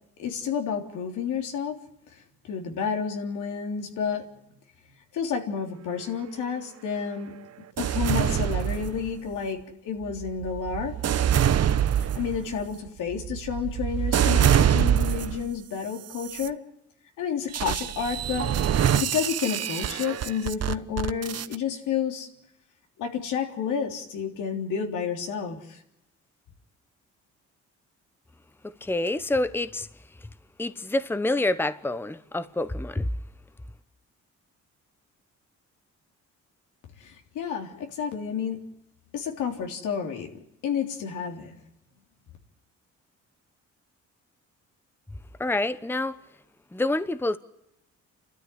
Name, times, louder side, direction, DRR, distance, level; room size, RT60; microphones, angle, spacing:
voice 1, 0.2-1.8 2.1-4.2 5.1-7.3 7.8-10.9 12.0-16.6 17.2-18.5 18.9-22.3 23.0-25.8 37.0-38.6 39.1-41.6, left 7 dB, 85° left, 3.6 m, -30 dB
sound 1, 7.8-9.3 10.0-15.5 16.1-16.5 17.5-21.6, right 10 dB, 55° right, 1.0 m, -25 dB
voice 2, 28.6-29.9 30.2-30.3 30.6-33.1 45.4-46.2 46.7-47.4, left 2 dB, 5° left, 0.9 m, -27 dB
29.5 x 13.0 x 9.8 m
cardioid pair, 90°, 30 cm